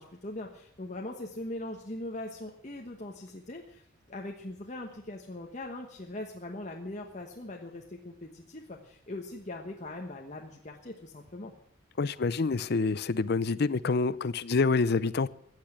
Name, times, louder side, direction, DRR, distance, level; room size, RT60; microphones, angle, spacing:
voice 1, 0.0-11.5, left 1 dB, 35° left, 1.2 m, -41 dB
voice 2, 12.0-15.3, left 4 dB, 50° left, 0.5 m, -27 dB
15.0 x 8.1 x 8.7 m
head